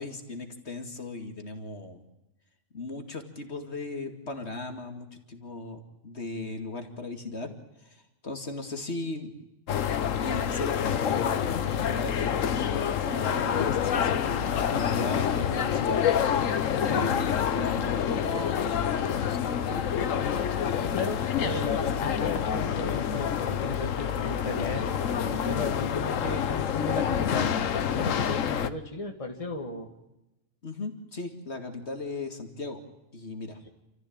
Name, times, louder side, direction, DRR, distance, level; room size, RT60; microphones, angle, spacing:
voice 1, 0.0-2.0 2.7-7.5 7.8-9.3 10.2-16.0 16.8-19.9 30.6-32.8 33.1-33.6, left 3 dB, 60° left, 6 dB, 2.6 m, -37 dB
sound 1, 9.7-28.7, left 8 dB, 80° left, 1.3 m, -27 dB
voice 2, 20.8-24.8 25.2-27.6 27.9-29.9, left 2 dB, 25° left, 3 dB, 2.1 m, -35 dB
29.0 x 14.5 x 8.8 m, 0.94 s
omnidirectional pair, 1.3 m